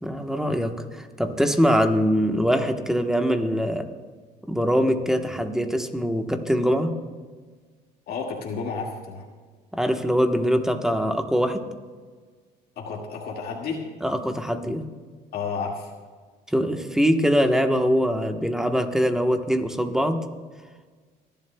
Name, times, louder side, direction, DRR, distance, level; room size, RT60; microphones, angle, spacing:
voice 1, 0.0-3.9 4.4-6.9 9.7-11.7 14.0-14.8 16.5-20.2, equal, 5° right, 5 dB, 1.1 m, -23 dB
voice 2, 8.1-9.2 12.8-13.8 15.3-15.9, left 5 dB, 70° left, -1 dB, 2.0 m, -31 dB
29.5 x 11.5 x 2.3 m, 1.5 s
cardioid pair, 110°, 17 cm